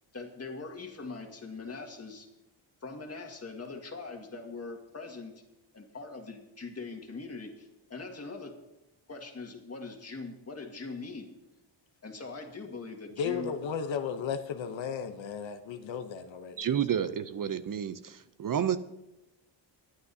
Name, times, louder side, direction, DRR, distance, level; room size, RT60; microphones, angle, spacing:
voice 1, 0.1-2.3 2.8-5.4 5.7-8.5 9.1-11.3 12.0-13.5, left 3 dB, 30° left, 1.8 m, -42 dB
voice 2, 13.2-16.6, left 6 dB, 70° left, 0.9 m, -34 dB
voice 3, 16.6-18.8, right 9 dB, 45° right, 0.6 m, -30 dB
21.5 x 9.5 x 2.7 m
cardioid pair, 105°, 48 cm